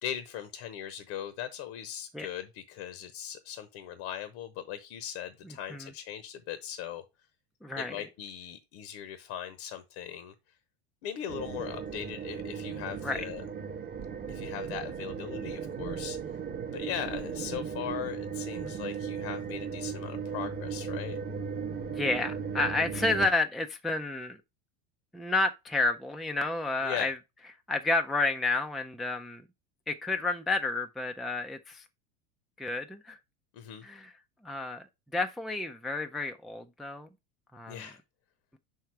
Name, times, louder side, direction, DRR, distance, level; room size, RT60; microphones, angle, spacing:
voice 1, 0.0-7.0 7.8-10.6 11.0-13.5 14.3-16.4 16.7-21.2 26.8-27.1 33.5-33.9 37.7-38.0, left 10 dB, 55° left, 0.9 m, -39 dB
voice 2, 7.6-7.9 13.0-13.2 18.6-18.7 21.9-24.4 25.1-27.1 27.7-29.4 29.9-31.8 32.6-33.2 33.8-34.1 34.4-34.9 35.1-37.1 37.5-37.8, left 2 dB, ahead, 0.4 m, -30 dB
sound 1, 11.3-23.3, right 6 dB, 30° right, 1.1 m, -36 dB
5.6 x 4.7 x 4.6 m
hypercardioid pair, 95°, 33 cm